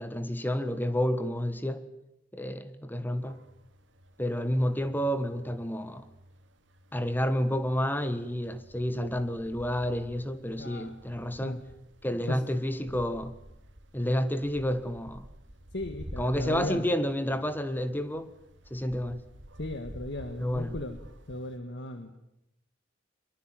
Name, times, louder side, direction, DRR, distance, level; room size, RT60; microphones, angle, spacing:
voice 1, 0.0-1.9 2.3-3.4 4.2-6.1 6.9-11.6 12.0-13.4 13.9-15.3 16.2-18.3 18.7-19.2 20.4-20.8, equal, 10° left, 1.5 m, -30 dB
sound 1, 3.2-21.6, equal, 70° right, 2.5 m, -50 dB
voice 2, 10.6-11.0 11.4-11.6 12.3-12.4 15.7-16.9 19.6-21.0 21.3-22.1, left 1 dB, 65° left, 1.8 m, -36 dB
24.5 x 22.5 x 9.1 m
head